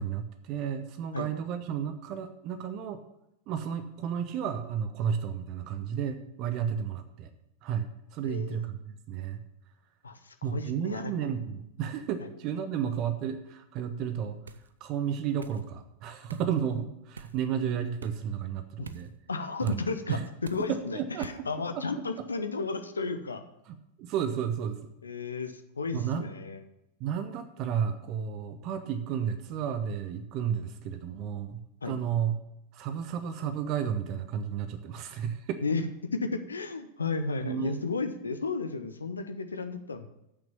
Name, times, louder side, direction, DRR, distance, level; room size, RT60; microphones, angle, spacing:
voice 1, 0.0-3.0 3.5-7.3 7.6-9.4 10.4-14.4 14.8-19.1 19.6-19.8 20.1-20.3 20.7-21.5 21.7-21.8 23.7-24.9 25.9-26.2 27.0-31.6 31.8-32.4 32.7-35.6 37.4-37.8, right 8 dB, 40° right, 9 dB, 0.7 m, -32 dB
voice 2, 8.2-8.6 10.0-11.1 12.2-12.3 18.8-18.9 19.3-20.2 20.5-23.4 25.0-26.6 31.8-31.9 35.6-35.8 36.1-40.1, left 4 dB, 75° left, 9 dB, 0.7 m, -33 dB
sound 1, 14.5-14.7 15.4-15.6 16.3-16.5 17.1-17.4 18.0-18.2 18.8-19.1 19.6-19.8 20.4-20.7 21.2-21.4, right 5 dB, 70° right, 0.5 m, -44 dB
8.3 x 6.1 x 7.1 m, 0.84 s
figure-of-eight pair, 90°, 0 cm